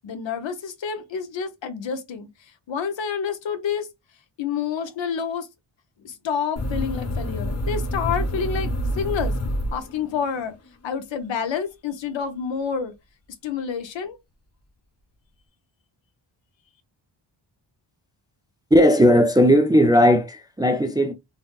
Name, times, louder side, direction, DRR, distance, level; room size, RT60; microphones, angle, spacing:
voice 1, 0.0-2.3 2.7-3.9 4.4-5.5 6.0-9.4 9.7-10.5 10.8-12.9 13.4-14.2, left 6 dB, 70° left, 0.8 m, -28 dB
sound 1, 6.6-10.3, equal, 35° left, 0.6 m, -27 dB
voice 2, 18.7-21.1, equal, 10° right, 0.3 m, -16 dB
3.9 x 2.0 x 2.3 m
cardioid pair, 90°, 47 cm